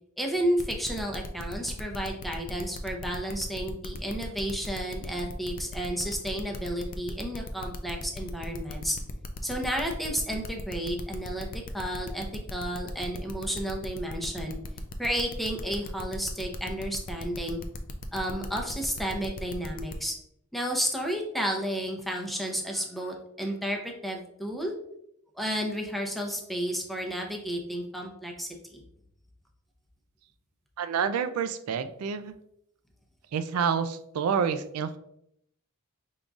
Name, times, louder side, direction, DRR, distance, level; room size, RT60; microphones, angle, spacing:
voice 1, 0.2-9.0 9.4-12.3 12.5-14.6 15.0-17.6 18.1-20.1 20.5-24.7 25.4-28.8, equal, ahead, 1 dB, 0.6 m, -32 dB
sound 1, 0.6-20.0, left 3 dB, 40° left, 0.4 m, -40 dB
voice 2, 30.8-32.3 33.3-35.0, right 6 dB, 90° right, 11 dB, 0.4 m, -28 dB
5.3 x 3.7 x 2.3 m, 0.75 s
head